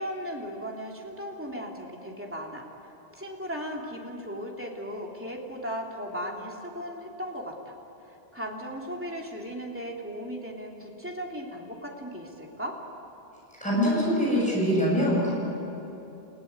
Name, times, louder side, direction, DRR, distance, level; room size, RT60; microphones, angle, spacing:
voice 1, 0.0-2.7 3.1-7.7 8.1-12.8, equal, 10° right, -1 dB, 3.2 m, -37 dB
voice 2, 13.6-15.3, equal, 5° left, -6 dB, 7.6 m, -23 dB
29.5 x 17.5 x 9.6 m, 3.0 s
omnidirectional pair, 1.0 m